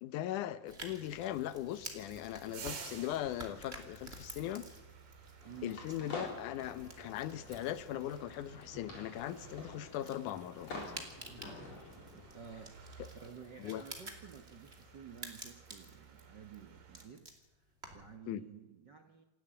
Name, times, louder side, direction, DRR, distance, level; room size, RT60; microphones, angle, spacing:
voice 1, 0.0-4.7 5.6-10.7 13.0-13.1 13.6-13.8 18.3-18.4, left 12 dB, 70° left, 14 dB, 2.3 m, -39 dB
Tearing Sinews Breaking Bones, 0.7-18.2, right 2 dB, 20° right, 2.5 m, -52 dB
sound 1, 2.3-17.1, right 6 dB, 80° right, 4.6 m, -54 dB
sound 2, 5.4-12.5, left 3 dB, 50° left, 5.2 m, -48 dB
voice 2, 5.4-5.8 11.2-12.8 13.1-17.3 17.9-19.2, right 7 dB, 65° right, 5 dB, 1.1 m, -52 dB
27.5 x 12.0 x 8.8 m, 1.0 s
omnidirectional pair, 4.0 m